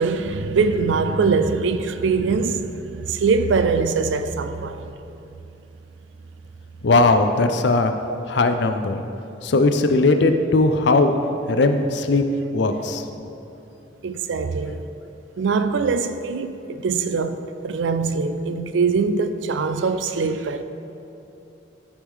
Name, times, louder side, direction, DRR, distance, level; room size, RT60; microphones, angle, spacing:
voice 1, 0.0-4.9 14.0-14.9 15.4-20.6, right 4 dB, 70° right, 0.4 m, -22 dB
voice 2, 6.8-7.9 8.3-9.0 9.4-11.1 11.5-12.2 12.5-13.0, left 3 dB, 60° left, 0.5 m, -18 dB
13.0 x 4.8 x 3.7 m
head